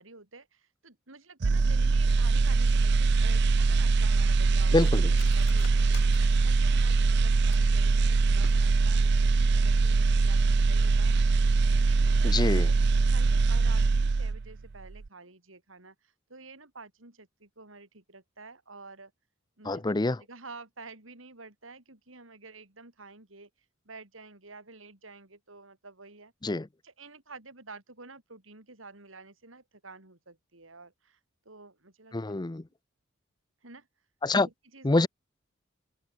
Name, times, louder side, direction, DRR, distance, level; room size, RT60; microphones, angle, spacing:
voice 1, 0.0-11.2 11.8-12.3 12.6-19.1 19.6-19.8 20.2-23.5 23.8-26.3 26.8-31.2 31.4-32.2 33.6-33.9 34.4-35.1, right 3 dB, 90° right, 4.2 m, -49 dB
sound 1, 1.4-14.6 14.9-15.1, right 4 dB, 60° right, 0.5 m, -23 dB
Cutlery silverware, 3.4-7.8 8.3-9.0 9.3-9.4 9.8-10.1 10.4-10.6, left 7 dB, 65° left, 5.0 m, -51 dB
voice 2, 12.2-12.7 19.7-20.2 26.4-26.7 32.1-32.6 34.2-34.5 34.8-35.1, left 2 dB, 20° left, 0.6 m, -25 dB
head